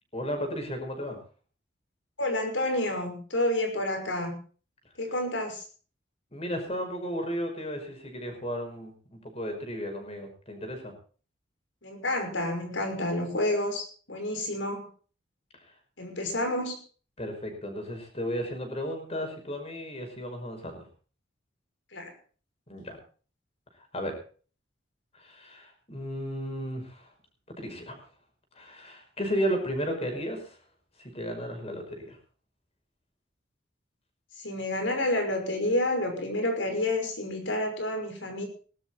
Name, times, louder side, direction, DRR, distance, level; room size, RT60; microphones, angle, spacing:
voice 1, 0.1-1.2 6.3-10.9 15.7-15.8 17.2-20.9 22.7-23.0 23.9-24.2 25.1-27.1 27.6-28.0 28.5-30.6 31.0-32.2, equal, 30° left, 4 dB, 5.5 m, -34 dB
voice 2, 2.2-4.4 5.0-5.6 11.8-14.9 16.0-16.8 21.9-22.1 34.4-38.5, left 1 dB, 80° left, 5 dB, 6.0 m, -29 dB
19.5 x 12.5 x 4.4 m, 0.40 s
head